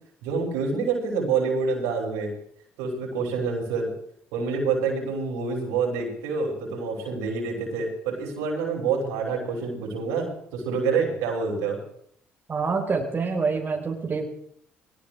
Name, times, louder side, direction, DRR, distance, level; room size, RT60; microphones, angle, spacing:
voice 1, 0.2-2.3 2.8-3.9 4.3-11.8, right 4 dB, 85° right, -1 dB, 6.2 m, -27 dB
voice 2, 12.5-14.2, right 4 dB, 40° right, 0 dB, 4.6 m, -26 dB
22.0 x 18.5 x 3.4 m, 0.68 s
supercardioid pair, 65°, 5 cm